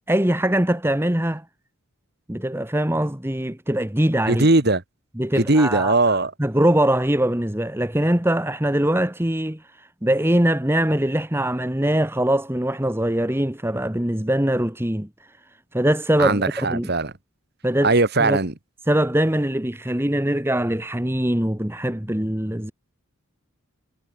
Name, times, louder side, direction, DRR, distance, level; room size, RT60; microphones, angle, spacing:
voice 1, 0.1-1.4 2.3-4.5 5.2-6.0 6.4-9.6 10.0-15.1 15.7-16.4 16.7-16.9 17.6-17.9 18.2-18.4 18.9-22.7, right 1 dB, 10° right, 1.2 m, -22 dB
voice 2, 4.3-4.8 5.4-6.3 16.2-17.1 17.8-18.5, right 2 dB, 45° right, 1.6 m, -19 dB
head